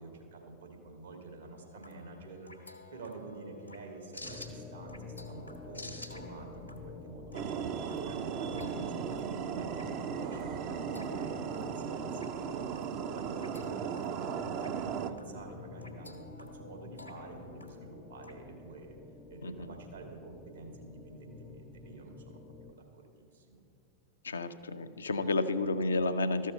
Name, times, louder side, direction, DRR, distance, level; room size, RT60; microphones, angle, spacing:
voice 1, 0.0-12.8 13.2-19.0 19.3-23.6, right 3 dB, 75° right, 2 dB, 1.8 m, -48 dB
sound 1, 1.6-18.3, left 2 dB, 90° left, 1.0 m, -53 dB
sound 2, 4.2-22.7, left 3 dB, 5° left, 0.5 m, -49 dB
sound 3, 7.3-15.1, right 7 dB, 40° right, 0.5 m, -36 dB
voice 2, 19.4-19.7 24.2-26.5, left 2 dB, 75° left, 9 dB, 0.5 m, -31 dB
13.0 x 6.4 x 5.3 m, 2.7 s
figure-of-eight pair, 90°, 0 cm